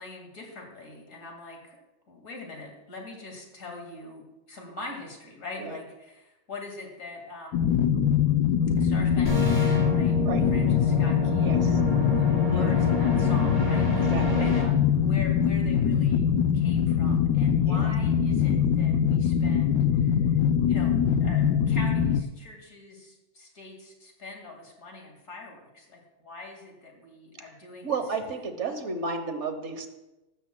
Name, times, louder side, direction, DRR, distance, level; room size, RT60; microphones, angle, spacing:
voice 1, 0.0-1.8 2.1-7.7 8.8-10.2 10.5-14.1 14.4-16.3 16.5-20.3 20.7-28.0, left 2 dB, 60° left, 1 dB, 2.5 m, -43 dB
sound 1, 7.5-22.2, left 8 dB, 80° left, 1.1 m, -23 dB
sound 2, 9.2-14.6, left 1 dB, 25° left, 2.4 m, -29 dB
voice 2, 11.4-11.8 12.5-12.8 14.1-14.5 17.7-17.9 27.8-29.9, right 4 dB, 55° right, 7 dB, 1.3 m, -32 dB
15.5 x 14.0 x 2.2 m, 0.99 s
omnidirectional pair, 1.6 m